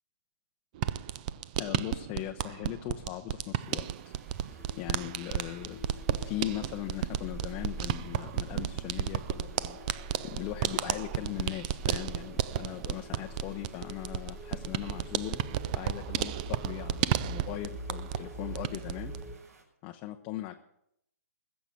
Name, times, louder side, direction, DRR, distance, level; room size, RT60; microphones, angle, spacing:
sound 1, 0.8-18.3 18.5-19.2, right 12 dB, 30° right, 0.4 m, -33 dB
voice 1, 1.6-4.1 4.4-15.4 15.7-19.1 19.8-20.5, left 14 dB, 20° left, 4 dB, 0.7 m, -39 dB
sound 2, 3.6-19.6, right 4 dB, 70° right, 5.7 m, -58 dB
sound 3, 4.5-19.4, right 1 dB, 5° right, 1.4 m, -44 dB
20.5 x 7.2 x 7.2 m, 0.77 s
hypercardioid pair, 155°, 9 cm